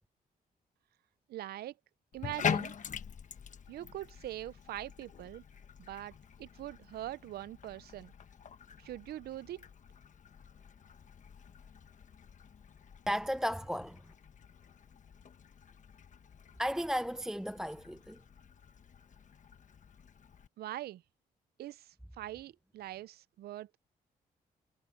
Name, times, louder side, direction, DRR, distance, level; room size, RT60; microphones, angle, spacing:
voice 1, 1.3-1.7 2.1-2.7 3.7-5.4 5.8-8.1 8.8-9.6 20.6-21.0 21.6-23.8, right 14 dB, 90° right, 0.5 m, -43 dB
Bathtub (filling or washing), 2.1-20.5, left 7 dB, 50° left, 1.2 m, -44 dB
voice 2, 13.1-14.0 16.6-18.2, equal, 5° right, 0.7 m, -34 dB
cardioid pair, 90°, 16 cm